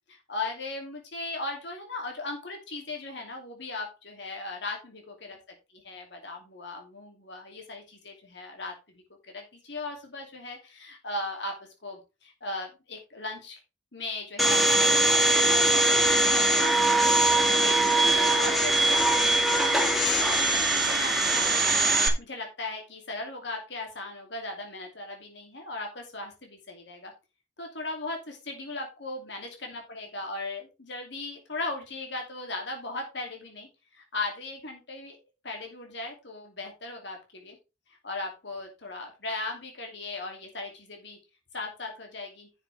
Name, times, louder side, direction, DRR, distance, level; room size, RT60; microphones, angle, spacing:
voice 1, 0.1-5.4 5.7-9.0 9.3-13.6 13.9-21.8 22.2-27.1 27.6-35.2 35.4-37.6 37.9-41.2 41.5-42.5, left 2 dB, 65° left, 2 dB, 2.8 m, -38 dB
Domestic sounds home sounds, 14.4-22.1, right 2 dB, ahead, 1.9 m, -22 dB
11.0 x 7.2 x 3.4 m, 0.27 s
head